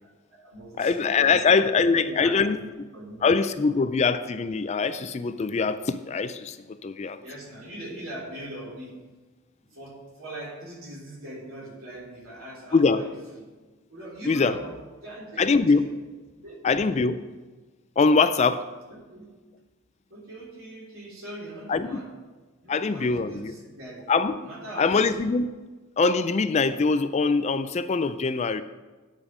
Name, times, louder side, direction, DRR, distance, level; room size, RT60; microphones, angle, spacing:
voice 1, 0.0-3.2 7.2-9.0 9.6-13.5 13.9-15.9 16.4-16.6 18.9-19.3 20.1-22.2 22.6-24.1 24.4-25.3, right 1 dB, 70° right, -4 dB, 3.2 m, -41 dB
voice 2, 0.8-2.6 3.2-7.2 12.7-13.0 14.3-14.5 15.4-15.9 16.6-17.2 18.0-18.6 21.7-22.0 22.7-23.5 24.1-24.4 24.8-25.5 26.0-28.6, left 4 dB, 30° left, 12 dB, 0.3 m, -23 dB
9.2 x 5.1 x 7.2 m, 1.3 s
head